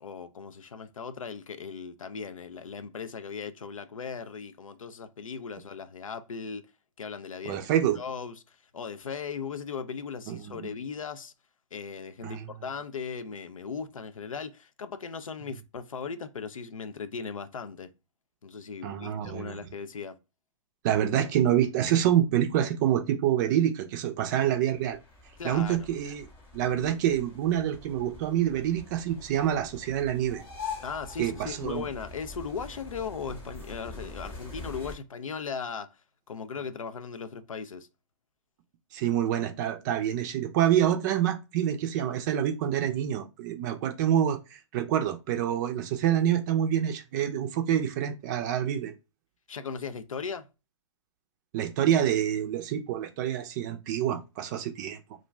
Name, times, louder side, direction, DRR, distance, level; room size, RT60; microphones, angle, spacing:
voice 1, 0.0-6.6 7.0-7.6 8.0-11.3 11.7-17.9 18.4-20.2 25.4-25.9 30.8-36.0 36.3-37.9 49.5-50.5, left 6 dB, 90° left, 0.4 m, -38 dB
voice 2, 7.5-8.0 10.3-10.7 12.2-12.4 18.8-19.7 20.8-25.0 25.4-26.3 26.5-30.4 31.2-31.8 38.9-48.9 51.5-55.0, right 10 dB, 35° right, 0.4 m, -27 dB
sound 1, 24.5-34.9, left 4 dB, 15° left, 0.9 m, -44 dB
2.5 x 2.2 x 3.0 m
hypercardioid pair, 125°, 17 cm